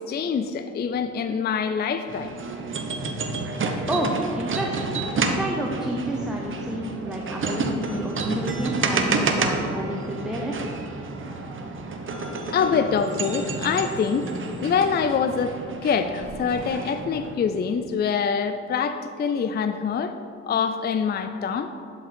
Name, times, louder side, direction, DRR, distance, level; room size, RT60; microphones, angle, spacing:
voice 1, 0.1-2.3 12.5-14.3 14.6-20.2 20.4-21.7, left 6 dB, 35° left, 9 dB, 0.4 m, -25 dB
sound 1, 2.1-17.4, right 3 dB, 40° right, 1.0 m, -30 dB
voice 2, 3.9-10.7, right 1 dB, ahead, -2 dB, 0.9 m, -29 dB
sound 2, 13.0-15.5, right 3 dB, 20° right, 1.2 m, -48 dB
11.5 x 5.2 x 4.3 m, 2.7 s
cardioid pair, 90°, 30 cm